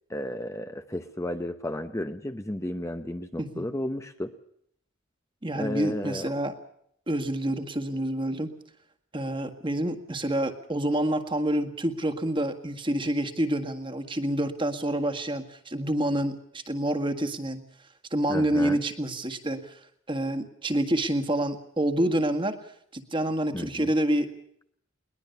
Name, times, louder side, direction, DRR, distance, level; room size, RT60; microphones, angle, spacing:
voice 1, 0.1-4.3 5.5-6.4 18.3-18.8 23.5-23.9, left 1 dB, 15° left, 8 dB, 0.8 m, -33 dB
voice 2, 5.4-6.6 7.1-8.5 9.1-17.6 18.1-19.7 20.1-22.6 22.9-24.4, right 1 dB, 25° right, 6 dB, 1.8 m, -28 dB
21.5 x 21.0 x 6.8 m, 0.71 s
head